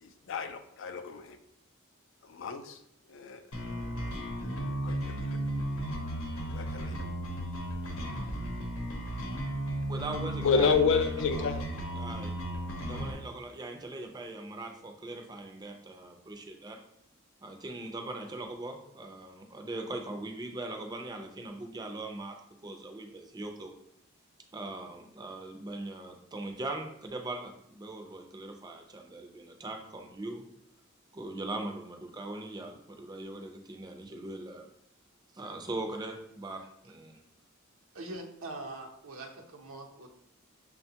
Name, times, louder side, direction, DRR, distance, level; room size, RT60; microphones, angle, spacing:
voice 1, 0.0-1.4 2.2-2.8 3.1-4.1 4.4-5.5 6.5-6.9 10.4-11.7, left 5 dB, 65° left, 8 dB, 0.4 m, -31 dB
sound 1, 3.5-13.1, right 1 dB, 80° left, 0.8 m, -35 dB
voice 2, 9.9-10.7 12.0-12.3 12.8-16.8 17.4-22.4 22.6-23.7 24.5-30.4 31.1-34.7 35.3-37.2, right 2 dB, 20° right, 3 dB, 0.4 m, -40 dB
voice 3, 37.9-40.1, right 2 dB, 85° right, 1 dB, 0.7 m, -42 dB
6.1 x 2.2 x 2.8 m, 0.73 s
head